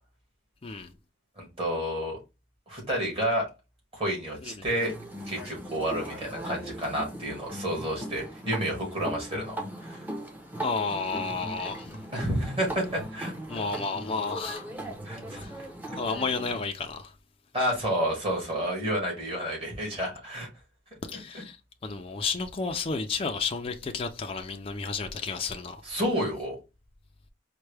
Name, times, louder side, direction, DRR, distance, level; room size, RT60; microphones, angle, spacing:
voice 1, 0.6-0.9 4.4-4.6 10.6-12.1 13.5-14.7 15.3-15.5 16.0-17.1 21.0-21.6 21.8-25.8, left 4 dB, 30° left, 0.4 m, -32 dB
voice 2, 1.4-2.2 2.7-3.5 3.9-4.9 5.3-9.6 9.8-10.0 12.1-13.6 15.0-15.4 17.5-20.5 25.8-26.6, equal, 30° right, 1.8 m, -30 dB
sound 1, 4.8-16.6, right 1 dB, 10° right, 0.8 m, -39 dB
4.5 x 2.2 x 3.2 m
head